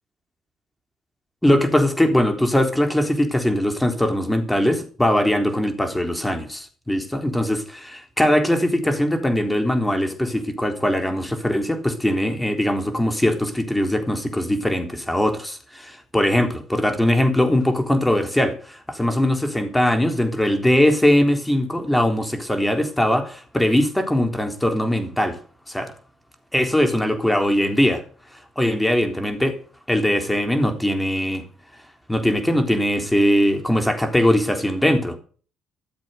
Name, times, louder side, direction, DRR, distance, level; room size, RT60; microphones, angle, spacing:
voice 1, 1.4-25.4 25.7-25.9 26.5-28.0 28.3-29.5 29.9-31.4 32.1-35.2, left 1 dB, 5° left, 3.7 m, -21 dB
14.0 x 7.5 x 8.0 m
cardioid pair, 85°, 0 cm